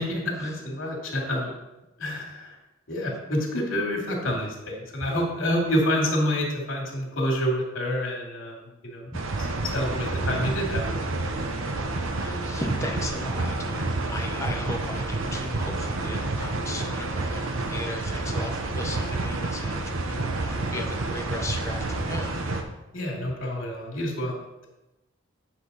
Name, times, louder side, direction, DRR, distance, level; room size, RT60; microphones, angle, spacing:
voice 1, 0.0-1.5 2.0-2.5 2.9-8.6 8.8-9.1 9.7-11.0 22.9-24.3, equal, 75° left, -1 dB, 2.5 m, -28 dB
sound 1, 9.1-22.6, right 2 dB, 75° right, 0.9 m, -29 dB
voice 2, 11.8-22.4, left 1 dB, 15° left, 1 dB, 1.0 m, -37 dB
9.2 x 5.9 x 4.1 m, 0.96 s
head